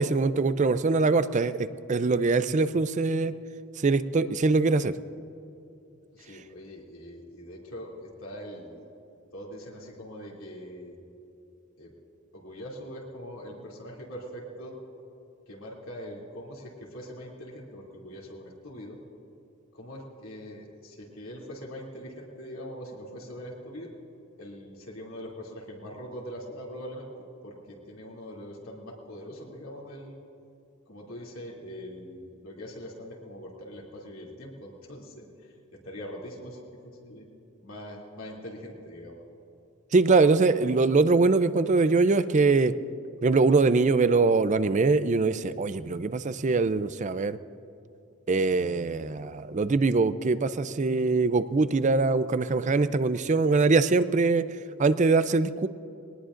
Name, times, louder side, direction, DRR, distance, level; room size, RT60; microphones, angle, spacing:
voice 1, 0.0-3.3 3.8-4.9 39.9-42.7 43.2-47.4 48.3-54.5 54.8-55.7, right 3 dB, 35° right, 13 dB, 0.4 m, -23 dB
voice 2, 6.1-8.9 9.3-11.0 11.8-11.9 12.3-14.8 15.5-19.0 19.7-23.9 24.4-27.1 27.4-30.1 30.9-37.3 37.6-39.2, equal, 75° left, -3 dB, 2.8 m, -42 dB
21.5 x 19.0 x 2.6 m, 2.7 s
head